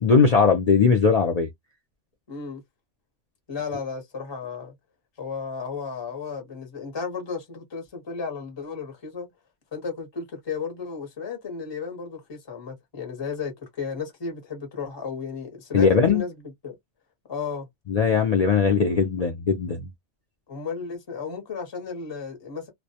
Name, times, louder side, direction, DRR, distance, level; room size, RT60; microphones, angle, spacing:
voice 1, 0.0-1.5 15.7-16.2 17.9-19.8, left 5 dB, 65° left, 0.4 m, -19 dB
voice 2, 2.3-2.6 3.5-4.7 5.2-9.3 9.7-16.4 16.6-16.8 17.3-17.7 20.5-22.7, left 5 dB, 25° left, 0.7 m, -34 dB
2.1 x 2.1 x 2.7 m
omnidirectional pair, 1.2 m